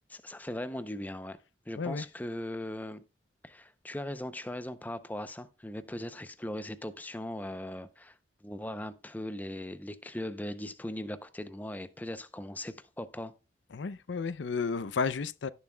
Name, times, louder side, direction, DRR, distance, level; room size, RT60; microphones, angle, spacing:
voice 1, 0.1-1.4 1.7-3.0 3.4-8.2 8.4-13.3, left 1 dB, 10° left, 0.5 m, -39 dB
voice 2, 1.8-2.1 13.7-15.5, left 5 dB, 85° left, 0.5 m, -32 dB
17.0 x 7.1 x 2.2 m
head